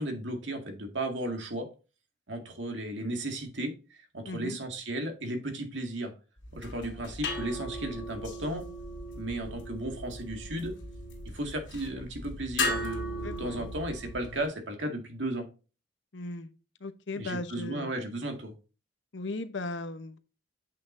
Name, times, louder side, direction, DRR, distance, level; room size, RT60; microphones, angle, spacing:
voice 1, 0.0-1.7 2.3-6.1 6.5-8.7 9.2-10.8 11.3-15.5 17.2-18.5, right 1 dB, 80° right, 4 dB, 1.9 m, -35 dB
voice 2, 4.3-4.6 13.2-13.7 16.1-16.5 16.8-17.9 19.1-20.2, left 2 dB, 75° left, 10 dB, 0.9 m, -37 dB
sound 1, 6.4-14.5, left 1 dB, 90° left, 2.6 m, -37 dB
8.6 x 5.8 x 2.6 m, 0.33 s
head